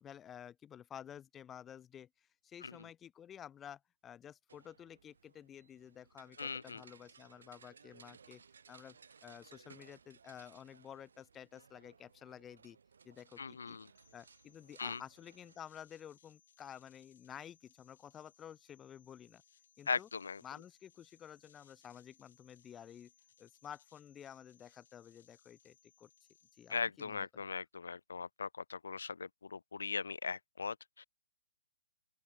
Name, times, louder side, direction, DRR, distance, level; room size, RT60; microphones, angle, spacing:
voice 1, 0.0-2.1 2.4-8.4 8.7-12.8 13.0-13.8 14.1-19.4 19.8-20.1 20.4-23.1 23.4-26.1 26.6-27.3, left 9 dB, 10° left, 1.2 m, -52 dB
sound 1, 4.5-15.6, right 6 dB, 75° right, 6.4 m, -62 dB
voice 2, 6.4-6.8 13.4-13.9 14.8-15.0 19.9-20.4 26.7-31.0, left 5 dB, 90° left, 0.5 m, -39 dB
sound 2, 14.0-26.8, left 8 dB, 55° left, 7.1 m, -69 dB
open air
hypercardioid pair, 160°, 0 cm